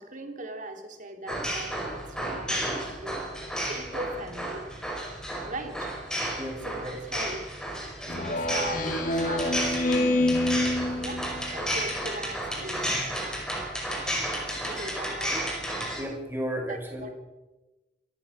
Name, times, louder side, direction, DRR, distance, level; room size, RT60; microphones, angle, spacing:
voice 1, 0.0-5.9 6.6-7.6 8.1-10.3 10.9-13.1 13.5-14.2 14.6-15.6 16.7-17.1, right 1 dB, 50° right, 4 dB, 3.4 m, -40 dB
sound 1, 1.3-16.0, equal, 5° left, 5.6 m, -33 dB
voice 2, 6.4-6.9 9.9-10.4 16.0-17.1, equal, 15° right, 2 dB, 5.4 m, -35 dB
Speech synthesizer, 8.1-11.6, left 1 dB, 50° left, 2.9 m, -27 dB
27.0 x 14.5 x 6.6 m, 1.1 s
head